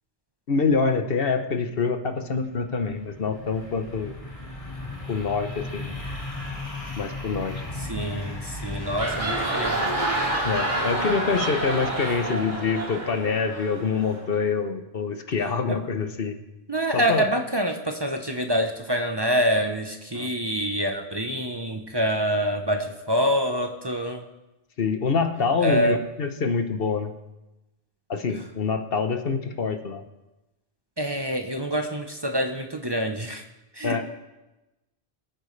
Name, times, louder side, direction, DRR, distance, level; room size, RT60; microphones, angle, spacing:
voice 1, 0.5-4.1 5.1-5.9 7.0-7.5 10.4-16.4 16.9-17.3 20.1-20.3 24.8-27.1 28.1-30.0 33.8-34.0, left 5 dB, 60° left, 7 dB, 1.1 m, -26 dB
sound 1, 2.2-13.9, left 2 dB, 30° left, 1.8 m, -37 dB
voice 2, 7.8-9.8 15.7-15.8 16.7-24.2 25.6-26.0 31.0-33.4 33.7-34.0, equal, 25° right, 4 dB, 0.9 m, -26 dB
sound 2, 8.7-14.3, right 2 dB, 45° right, 2.8 m, -28 dB
25.0 x 8.9 x 3.3 m, 1.0 s
omnidirectional pair, 1.1 m